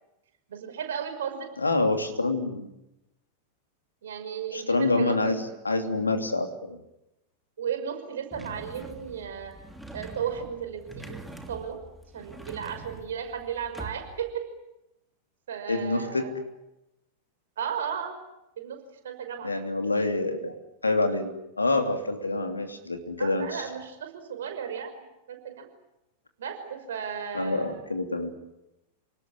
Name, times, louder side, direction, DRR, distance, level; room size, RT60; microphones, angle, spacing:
voice 1, 0.5-1.5 4.0-5.6 7.6-9.5 9.9-11.2 11.5-11.8 12.1-14.4 15.5-16.3 17.6-18.2 18.6-19.5 23.2-24.9 25.3-25.7 26.4-27.8, right 7 dB, 60° right, 6 dB, 5.8 m, -35 dB
voice 2, 1.6-2.7 4.5-6.8 15.7-16.3 19.4-20.5 20.8-21.3 21.6-23.6 27.3-28.3, left 2 dB, 80° left, 6 dB, 2.9 m, -27 dB
sound 1, 8.3-14.3, right 2 dB, ahead, 3.1 m, -44 dB
29.0 x 19.5 x 10.0 m, 0.92 s
figure-of-eight pair, 90°, 0 cm